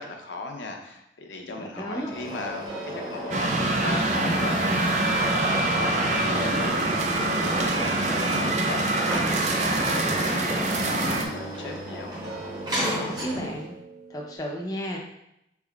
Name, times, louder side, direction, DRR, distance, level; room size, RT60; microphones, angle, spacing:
voice 1, 0.0-7.9 8.2-12.1, left 2 dB, 90° left, 2 dB, 0.7 m, -37 dB
voice 2, 1.5-2.1 13.0-13.7 14.1-15.0, equal, 20° left, -1 dB, 0.5 m, -33 dB
sound 1, 2.0-13.7, equal, 25° right, 1.0 m, -33 dB
sound 2, 2.7-14.4, right 4 dB, 70° right, 1.5 m, -44 dB
sound 3, 3.3-11.3, right 2 dB, 40° right, 0.4 m, -25 dB
5.1 x 3.4 x 2.3 m, 0.82 s
head